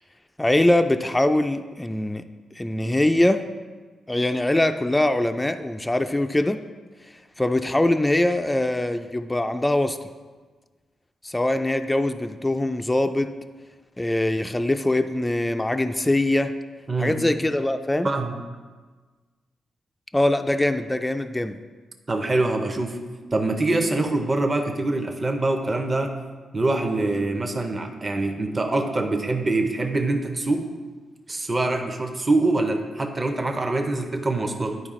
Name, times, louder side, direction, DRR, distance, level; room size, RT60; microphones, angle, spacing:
voice 1, 0.4-2.2 2.6-3.4 4.1-6.6 7.4-10.0 11.2-13.3 14.0-16.5 17.0-18.1 20.1-21.6, left 1 dB, 10° left, 8 dB, 0.3 m, -22 dB
voice 2, 16.9-17.2 18.0-18.3 22.1-23.0 23.3-26.2 26.5-30.7 31.3-34.8, right 2 dB, 25° right, 4 dB, 0.6 m, -24 dB
10.5 x 4.8 x 3.7 m, 1.4 s
cardioid pair, 105°, 0 cm